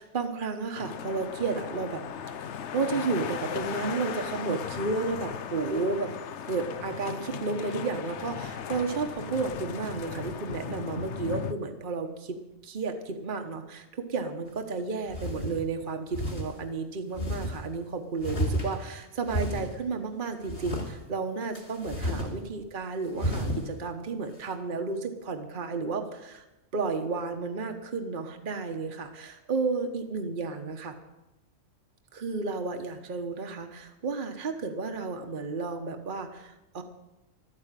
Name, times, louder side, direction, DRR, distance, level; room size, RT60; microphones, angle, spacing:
voice 1, 0.0-2.0 2.7-6.1 6.4-26.4 26.7-30.9 32.1-36.8, right 4 dB, 40° right, 5 dB, 1.3 m, -32 dB
sound 1, 0.7-11.5, left 8 dB, 65° left, 1.0 m, -37 dB
sound 2, 14.5-14.6 15.1-15.6 16.1-16.5 17.2-17.6 18.2-18.9 19.3-19.7 20.5-20.9 21.5-22.3 22.6-22.7 23.2-23.6, equal, 50° left, 3.1 m, -31 dB
12.5 x 10.0 x 9.0 m, 0.97 s
omnidirectional pair, 1.3 m